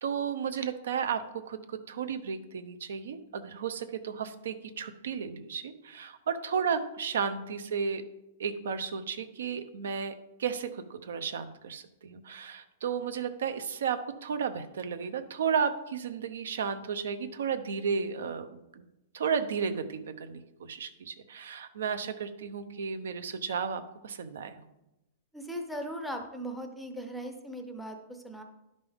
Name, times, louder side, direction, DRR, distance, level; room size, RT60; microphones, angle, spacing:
voice 1, 0.0-8.0 8.4-18.8 19.1-24.6, right 6 dB, 80° right, 10 dB, 0.7 m, -33 dB
voice 2, 25.3-28.4, equal, ahead, 4 dB, 0.5 m, -38 dB
10.5 x 5.3 x 3.5 m, 0.94 s
supercardioid pair, 175°, 0 cm